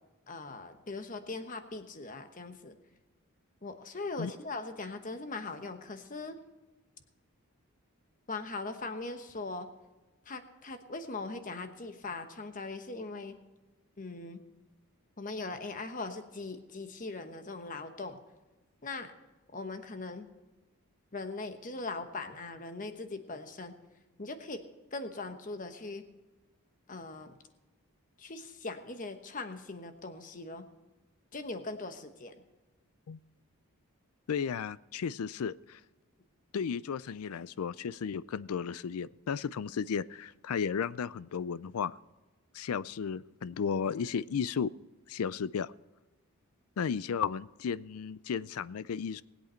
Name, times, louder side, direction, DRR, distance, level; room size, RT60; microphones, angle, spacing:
voice 1, 0.3-2.8 3.6-6.4 8.3-9.7 10.3-13.4 14.0-14.4 15.2-18.2 18.8-19.1 19.5-20.3 21.1-23.7 24.2-24.6 24.9-26.0 26.9-27.4 28.2-30.7 31.3-32.4, left 3 dB, 35° left, 8 dB, 1.1 m, -40 dB
voice 2, 34.3-35.8 36.5-41.9 42.5-44.7 45.1-45.7 46.8-49.2, left 6 dB, 75° left, 19 dB, 0.4 m, -34 dB
20.0 x 8.3 x 4.4 m, 1.1 s
head